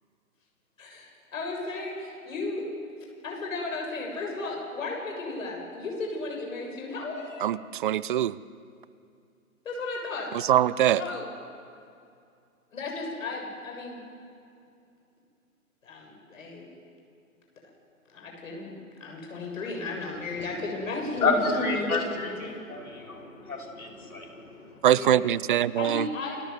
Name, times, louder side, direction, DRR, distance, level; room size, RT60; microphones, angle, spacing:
voice 1, 0.8-2.6 3.2-7.5 9.6-10.3 11.0-11.3 12.7-14.0 15.8-16.6 18.1-22.6 24.9-25.3 25.8-26.4, left 3 dB, 65° left, 0 dB, 7.3 m, -34 dB
voice 2, 7.4-8.4 10.5-11.0 24.8-26.1, right 11 dB, 35° right, 20 dB, 0.6 m, -23 dB
voice 3, 21.2-24.8, left 3 dB, 80° left, 0 dB, 5.1 m, -30 dB
28.5 x 19.5 x 8.1 m, 2.5 s
figure-of-eight pair, 125°, 43 cm